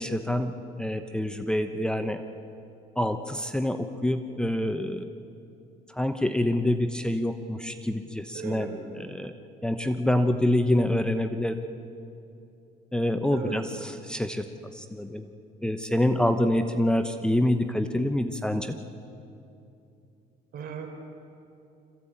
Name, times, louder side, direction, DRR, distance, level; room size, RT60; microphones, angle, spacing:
voice 1, 0.0-2.2 3.0-5.1 5.9-8.7 9.0-9.3 9.6-11.6 12.9-14.5 14.7-15.3 15.6-18.7, left 1 dB, 5° left, 7 dB, 0.9 m, -26 dB
voice 2, 8.3-8.7 13.3-13.6 20.5-20.9, right 6 dB, 60° right, 4 dB, 4.0 m, -36 dB
26.5 x 15.0 x 8.8 m, 2.7 s
cardioid pair, 110°, 17 cm